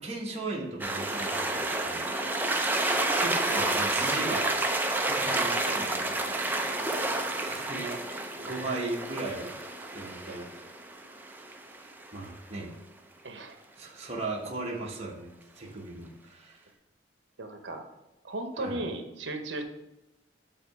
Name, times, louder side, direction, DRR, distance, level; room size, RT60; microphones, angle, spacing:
voice 1, 0.0-2.1 3.2-4.5 5.1-6.1 7.4-9.5 9.9-10.5 12.1-12.7 13.8-15.3 15.6-16.6 18.6-18.8, right 2 dB, 35° right, -2 dB, 1.0 m, -37 dB
sound 1, 0.8-12.2, right 2 dB, 10° right, 0.4 m, -30 dB
voice 2, 13.2-13.6 17.4-17.9 18.2-19.6, right 2 dB, 75° right, 6 dB, 0.8 m, -36 dB
8.1 x 2.8 x 4.6 m, 0.95 s
head